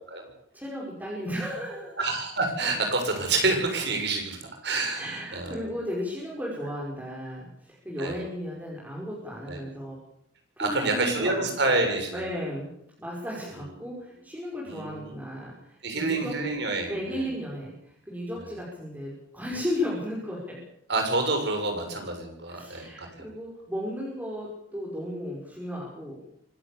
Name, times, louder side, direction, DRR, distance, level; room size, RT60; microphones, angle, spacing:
voice 1, 0.5-2.0 4.9-10.0 10.6-11.8 12.1-12.7 13.0-16.3 16.9-20.6 22.5-26.2, equal, 10° right, -5 dB, 5.7 m, -35 dB
voice 2, 2.0-5.7 8.0-8.2 9.5-9.6 10.6-12.3 14.6-15.1 15.8-17.3 20.9-23.3, right 3 dB, 65° right, 4 dB, 7.1 m, -28 dB
25.0 x 13.5 x 8.6 m, 0.73 s
head